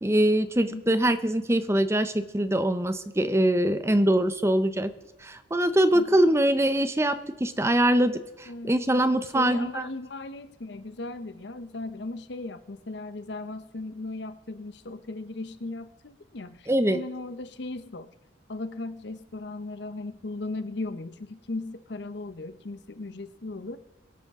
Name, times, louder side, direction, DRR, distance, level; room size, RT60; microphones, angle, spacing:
voice 1, 0.0-4.9 5.2-9.9 16.7-17.0, right 1 dB, 15° right, 11 dB, 0.6 m, -23 dB
voice 2, 8.5-8.9 9.2-18.1 18.5-23.8, left 2 dB, 60° left, 12 dB, 0.7 m, -37 dB
23.5 x 8.5 x 3.6 m, 0.98 s
head